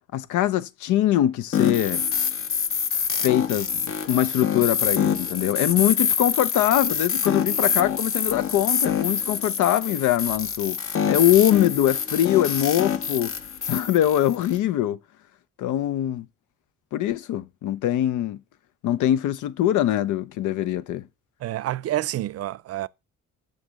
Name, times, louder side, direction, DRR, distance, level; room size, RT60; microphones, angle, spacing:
voice 1, 0.1-2.0 3.2-10.8 11.1-13.3 13.7-15.0 15.6-16.3 16.9-18.4 18.8-21.1, left 12 dB, 80° left, 0.6 m, -23 dB
sound 1, 1.5-14.6, left 7 dB, 45° left, 0.8 m, -26 dB
voice 2, 21.4-22.9, right 14 dB, 55° right, 0.5 m, -28 dB
6.5 x 6.4 x 6.3 m
cardioid pair, 90°, 30 cm